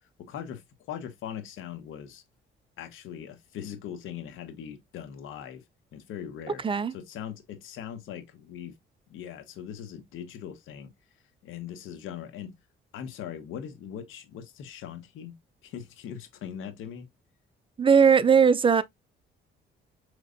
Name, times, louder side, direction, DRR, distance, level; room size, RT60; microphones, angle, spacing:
voice 1, 0.0-2.2 2.8-5.6 5.9-6.6 6.9-8.8 9.1-10.9 11.4-12.5 12.9-15.3 15.6-17.1, left 9 dB, 85° left, 1.0 m, -40 dB
voice 2, 17.8-18.8, right 6 dB, 25° right, 0.4 m, -19 dB
5.2 x 3.2 x 2.5 m
cardioid pair, 90°, 20 cm